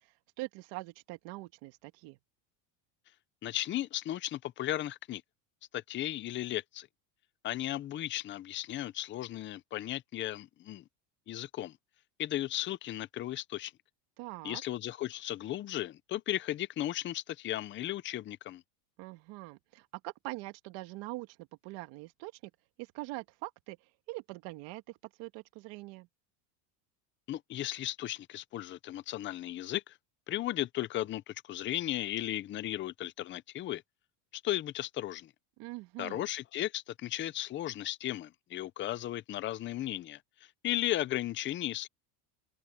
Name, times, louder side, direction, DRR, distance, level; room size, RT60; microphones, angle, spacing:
voice 1, 0.0-2.2 14.2-14.6 19.0-22.3 22.8-23.8 24.1-26.1 35.6-36.3, right 21 dB, 65° right, 1.7 m, -43 dB
voice 2, 3.4-5.2 5.7-6.9 7.4-10.8 11.3-11.8 12.2-13.7 14.4-18.6 27.3-30.0 30.3-33.8 34.3-35.3 36.0-40.2 40.6-41.9, left 14 dB, 25° left, 0.5 m, -35 dB
open air
cardioid pair, 145°, 48 cm